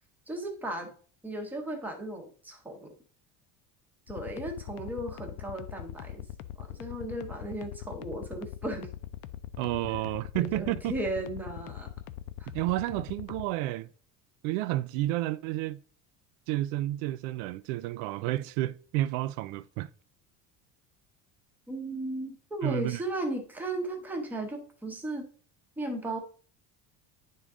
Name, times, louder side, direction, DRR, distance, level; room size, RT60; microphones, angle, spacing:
voice 1, 0.3-0.9 1.2-2.9 4.1-6.2 6.6-8.9 9.9-10.0 10.4-11.9 12.4-12.5 21.7-25.3 25.8-26.2, right 1 dB, 5° right, 0.8 m, -36 dB
sound 1, 4.1-13.5, left 13 dB, 70° left, 0.6 m, -41 dB
voice 2, 9.6-10.9 12.5-13.9 14.4-15.8 16.5-19.9 22.6-23.0, right 16 dB, 85° right, 0.5 m, -31 dB
10.0 x 3.7 x 3.6 m
cardioid pair, 175°, 38 cm